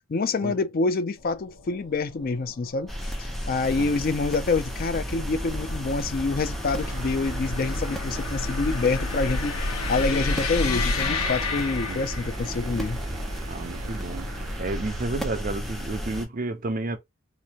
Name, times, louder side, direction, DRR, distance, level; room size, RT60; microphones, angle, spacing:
voice 1, 0.1-9.5 9.9-13.0, left 3 dB, 40° left, 0.4 m, -27 dB
sound 1, 1.2-12.6, left 3 dB, 90° left, 1.1 m, -32 dB
sound 2, 2.9-16.3, equal, ahead, 0.7 m, -33 dB
sound 3, 6.8-15.1, right 6 dB, 85° right, 0.5 m, -43 dB
voice 2, 13.5-14.3 14.6-17.0, right 2 dB, 40° right, 0.5 m, -31 dB
4.4 x 2.6 x 2.8 m
head